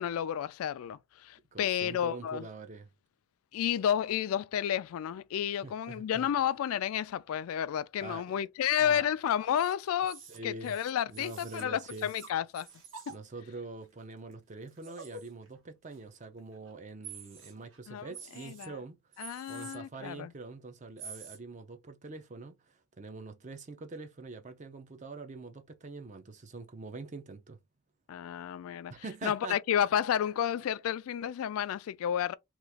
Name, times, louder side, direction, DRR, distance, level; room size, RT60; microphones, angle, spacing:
voice 1, 0.0-2.5 3.5-12.7 13.1-13.2 17.9-18.1 18.4-18.8 19.2-20.3 28.1-28.9 29.2-32.3, left 9 dB, 85° left, 0.3 m, -31 dB
voice 2, 1.5-2.9 5.6-6.3 8.0-8.3 8.8-9.1 10.3-10.8 11.1-12.1 13.1-19.0 19.2-27.6 28.9-29.6, right 3 dB, 35° right, 0.4 m, -44 dB
sound 1, 9.0-9.1 9.5-9.7 10.0-13.2 13.8-14.0 14.3-14.4 14.7-15.6 15.9-16.0 16.4-16.7 17.0-17.8 18.1-18.7 19.1-19.8 21.0-21.4, right 5 dB, 60° right, 1.0 m, -48 dB
3.0 x 2.3 x 3.4 m
head